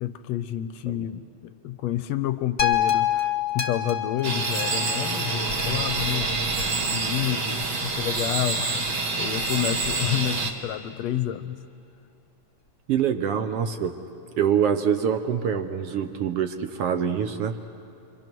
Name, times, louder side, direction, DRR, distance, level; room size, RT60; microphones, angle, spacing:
voice 1, 0.0-6.4 6.9-8.9 9.2-11.6, left 12 dB, 75° left, 12 dB, 1.6 m, -29 dB
sound 1, 2.6-6.9 7.6-7.7, left 10 dB, 45° left, 0.7 m, -28 dB
sound 2, 4.2-10.5, right 3 dB, 45° right, 2.1 m, -27 dB
voice 2, 12.9-14.0 14.4-17.6, right 8 dB, 65° right, 7 dB, 1.5 m, -25 dB
29.0 x 24.0 x 6.1 m, 2.8 s
omnidirectional pair, 3.5 m